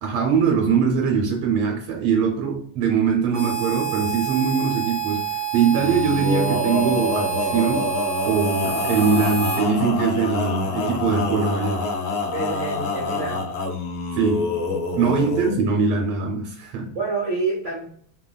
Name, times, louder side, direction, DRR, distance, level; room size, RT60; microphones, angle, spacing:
voice 1, 0.0-7.9 8.3-11.8 14.1-14.5 15.0-17.0, right 5 dB, 90° right, 1 dB, 1.5 m, -22 dB
Harmonica, 3.3-9.7, right 7 dB, 5° left, 0.8 m, -28 dB
Male singing, 5.7-15.6, left 3 dB, 75° left, 0.7 m, -26 dB
voice 2, 12.3-13.5 14.9-15.2 16.9-17.8, right 3 dB, 60° right, -5 dB, 0.7 m, -28 dB
3.3 x 2.3 x 2.2 m, 0.62 s
omnidirectional pair, 2.3 m